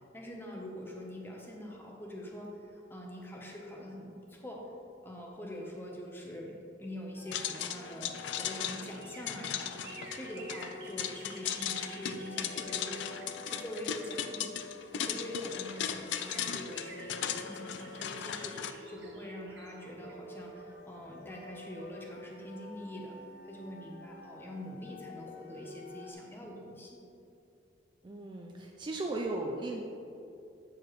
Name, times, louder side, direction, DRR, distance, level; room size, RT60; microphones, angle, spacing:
voice 1, 0.1-4.7 5.0-14.5 14.9-23.2 23.4-27.0, equal, 10° left, -1 dB, 0.7 m, -44 dB
sound 1, 7.1-26.1, left 2 dB, 50° left, 0.7 m, -50 dB
sound 2, 7.3-18.7, left 9 dB, 70° left, 0.3 m, -37 dB
sound 3, 8.0-14.6 15.2-15.3 15.5-21.3 21.6-21.7, right 3 dB, 60° right, 0.9 m, -53 dB
voice 2, 28.0-29.8, right 2 dB, 25° right, 1 dB, 0.3 m, -36 dB
8.1 x 4.7 x 3.1 m, 2.7 s
head